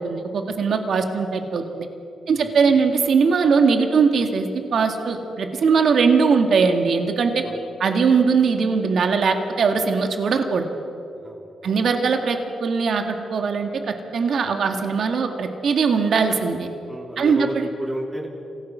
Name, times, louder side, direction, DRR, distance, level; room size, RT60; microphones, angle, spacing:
voice 1, 0.0-1.9 2.3-7.3 7.8-10.6 11.6-13.7 14.1-16.7 17.2-17.7, right 5 dB, 65° right, 5 dB, 2.0 m, -20 dB
voice 2, 11.2-11.8 16.9-18.3, right 1 dB, 25° right, -1 dB, 3.9 m, -32 dB
27.0 x 17.0 x 6.3 m, 2.7 s
cardioid pair, 80°, 0 cm